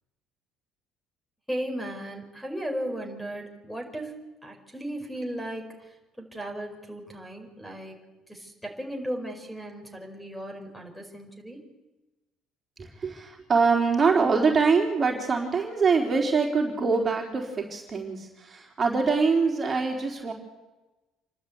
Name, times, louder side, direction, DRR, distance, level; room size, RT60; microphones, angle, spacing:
voice 1, 1.5-11.6, right 1 dB, 5° left, 5 dB, 4.7 m, -36 dB
voice 2, 12.8-20.3, right 4 dB, 35° right, 0 dB, 3.9 m, -24 dB
27.5 x 12.5 x 8.6 m, 1.1 s
supercardioid pair, 90°, 0 cm